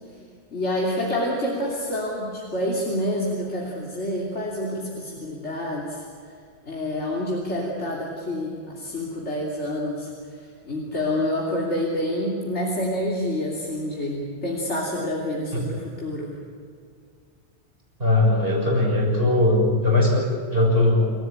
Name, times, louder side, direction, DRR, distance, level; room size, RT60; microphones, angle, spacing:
voice 1, 0.5-6.0 6.6-16.4, left 1 dB, 85° left, -3 dB, 3.4 m, -28 dB
voice 2, 18.0-21.1, left 2 dB, 55° right, -1 dB, 6.9 m, -20 dB
28.0 x 16.0 x 8.8 m, 2.2 s
omnidirectional pair, 1.1 m